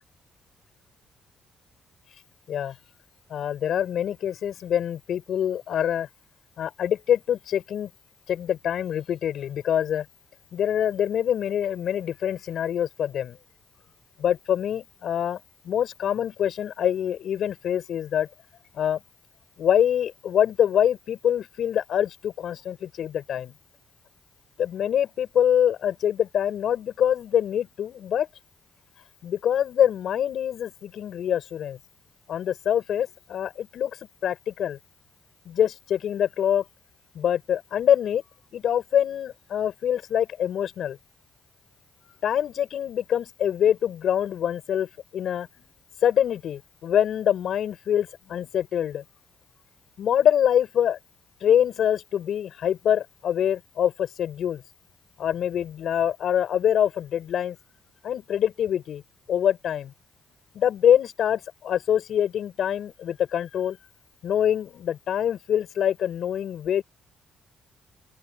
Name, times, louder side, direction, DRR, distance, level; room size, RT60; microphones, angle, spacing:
voice 1, 3.3-6.1 6.6-7.9 8.3-10.1 10.5-13.4 14.2-18.3 18.8-19.0 19.6-23.5 24.6-28.3 29.2-31.8 32.3-34.0 34.2-34.8 35.5-36.6 37.1-38.2 38.5-41.0 42.2-45.5 46.0-49.0 50.0-51.0 51.4-54.6 55.2-57.6 58.0-59.0 59.3-59.9 60.5-63.8 64.2-66.8, left 9 dB, 65° left, 5.4 m, -25 dB
open air
cardioid pair, 90°, 0 cm